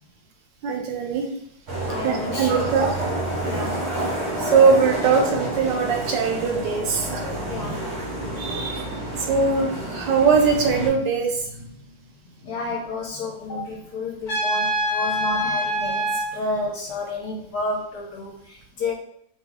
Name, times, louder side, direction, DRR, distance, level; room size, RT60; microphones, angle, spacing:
voice 1, 0.6-1.3 2.0-2.9 4.4-7.2 8.4-8.9 9.2-11.7, right 5 dB, 75° right, 2 dB, 1.2 m, -21 dB
sound 1, 1.7-10.9, right 1 dB, 50° right, 0.8 m, -29 dB
voice 2, 1.9-2.7 3.4-3.9 7.4-8.0 12.4-18.9, left 2 dB, 65° left, -1 dB, 1.1 m, -31 dB
Trumpet, 14.3-16.3, equal, 45° left, 0.9 m, -24 dB
3.1 x 2.3 x 3.5 m, 0.71 s
omnidirectional pair, 2.1 m